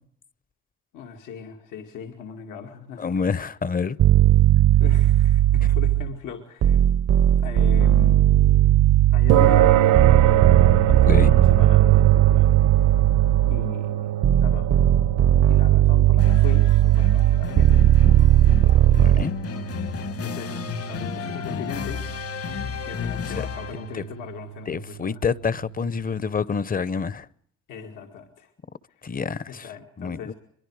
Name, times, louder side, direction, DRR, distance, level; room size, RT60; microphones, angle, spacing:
voice 1, 0.9-3.1 4.5-6.8 7.4-8.3 9.1-10.5 11.0-12.6 13.4-14.1 14.4-14.7 15.5-17.7 20.0-22.1 22.9-25.2 27.7-28.5 29.5-30.3, left 7 dB, 85° left, 2.4 m, -38 dB
voice 2, 3.0-4.0 10.8-11.3 19.0-19.3 24.7-27.3 29.0-29.7 30.0-30.3, left 5 dB, 30° left, 0.7 m, -27 dB
sound 1, 4.0-6.2 6.6-13.7 14.2-19.2, right 12 dB, 55° right, 0.7 m, -17 dB
sound 2, 9.3-25.8, right 13 dB, 85° right, 1.2 m, -26 dB
sound 3, 16.2-24.0, left 7 dB, 50° left, 1.3 m, -33 dB
23.5 x 23.0 x 4.9 m
cardioid pair, 90°, 30 cm